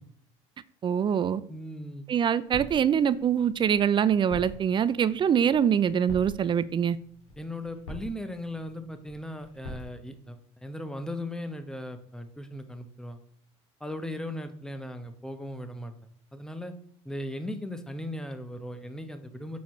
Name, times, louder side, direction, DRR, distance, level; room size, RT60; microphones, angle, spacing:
voice 1, 0.8-1.4 2.1-7.0, right 8 dB, 35° right, 16 dB, 0.5 m, -24 dB
voice 2, 1.5-2.1 7.4-13.2 13.8-15.9 16.3-16.7 17.0-19.6, left 1 dB, 5° left, 8 dB, 1.0 m, -37 dB
sound 1, 2.4-9.8, equal, 85° left, 2.4 m, -46 dB
8.1 x 6.3 x 3.2 m, 0.64 s
hypercardioid pair, 85°, 15 cm